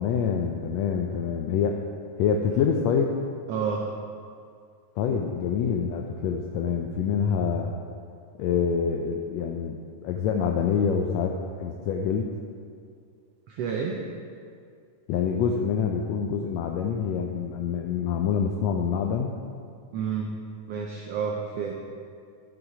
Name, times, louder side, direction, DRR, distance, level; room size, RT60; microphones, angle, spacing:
voice 1, 0.0-1.8 2.2-3.1 5.0-7.7 8.4-11.3 11.6-12.3 15.1-19.4, left 7 dB, 85° left, 3 dB, 1.5 m, -26 dB
voice 2, 3.5-3.9 13.5-14.1 19.9-20.3 20.7-21.7, right 6 dB, 85° right, 1 dB, 1.4 m, -29 dB
11.0 x 6.9 x 4.8 m, 2.3 s
omnidirectional pair, 3.6 m